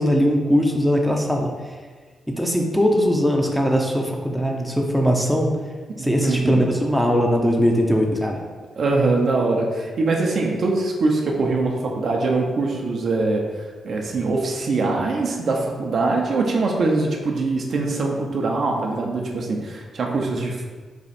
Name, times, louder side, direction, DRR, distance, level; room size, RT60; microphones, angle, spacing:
voice 1, 0.0-1.5 2.3-5.5 6.0-8.4, equal, ahead, 1 dB, 0.7 m, -20 dB
voice 2, 6.0-6.6 8.8-20.6, right 3 dB, 65° right, 0 dB, 0.7 m, -23 dB
4.2 x 2.4 x 4.2 m, 1.4 s
supercardioid pair, 55°, 0 cm